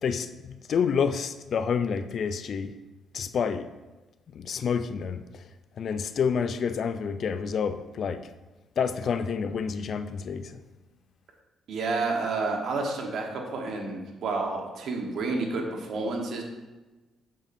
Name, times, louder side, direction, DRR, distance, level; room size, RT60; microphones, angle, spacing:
voice 1, 0.0-2.8 3.1-3.7 4.3-5.2 5.8-8.3 8.8-10.6, left 6 dB, 60° left, 0.4 m, -28 dB
voice 2, 11.7-16.4, right 3 dB, 70° right, 1.2 m, -30 dB
7.4 x 6.5 x 2.6 m
supercardioid pair, 75°, 0 cm